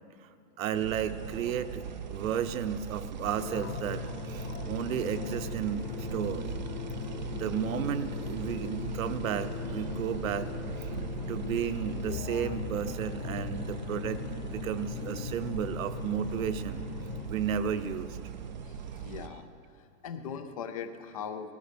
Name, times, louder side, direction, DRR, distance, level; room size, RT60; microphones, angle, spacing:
voice 1, 0.6-1.8 2.1-4.0 4.3-6.4 7.3-10.5 10.8-10.9 11.3-16.8 17.3-18.2, right 8 dB, 70° right, 10 dB, 0.9 m, -33 dB
sound 1, 0.7-19.3, right 7 dB, 35° right, 0.4 m, -40 dB
sound 2, 3.2-15.5, left 12 dB, 85° left, 0.6 m, -44 dB
sound 3, 3.5-17.3, left 5 dB, 45° left, 2.0 m, -40 dB
voice 2, 18.6-19.4 20.0-21.5, left 7 dB, 25° left, 9 dB, 0.5 m, -39 dB
18.5 x 15.0 x 5.2 m, 2.4 s
supercardioid pair, 180°, 42 cm